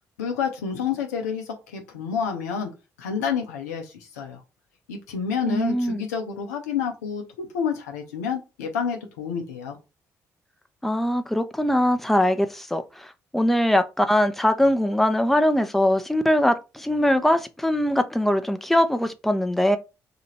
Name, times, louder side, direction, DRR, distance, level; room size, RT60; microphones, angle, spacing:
voice 1, 0.2-2.7 3.0-4.4 4.9-9.8, left 6 dB, 85° left, 0.6 m, -29 dB
voice 2, 5.5-6.1 10.8-19.8, left 1 dB, ahead, 0.5 m, -22 dB
2.9 x 2.5 x 4.2 m
hypercardioid pair, 45°, 9 cm